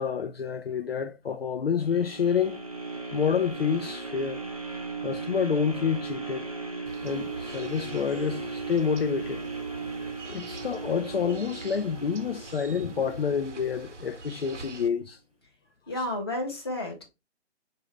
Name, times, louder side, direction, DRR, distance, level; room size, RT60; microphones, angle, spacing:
voice 1, 0.0-2.6 3.1-4.4 5.0-6.5 7.0-9.4 10.3-15.2, left 7 dB, 55° left, 0.5 m, -28 dB
sound 1, 1.8-13.9 14.4-14.5, right 4 dB, 30° right, 0.4 m, -37 dB
sound 2, 6.9-14.9, right 3 dB, 80° right, 0.9 m, -45 dB
voice 2, 15.9-17.1, left 1 dB, 20° left, 0.8 m, -31 dB
5.1 x 2.6 x 3.2 m
hypercardioid pair, 170°, 35 cm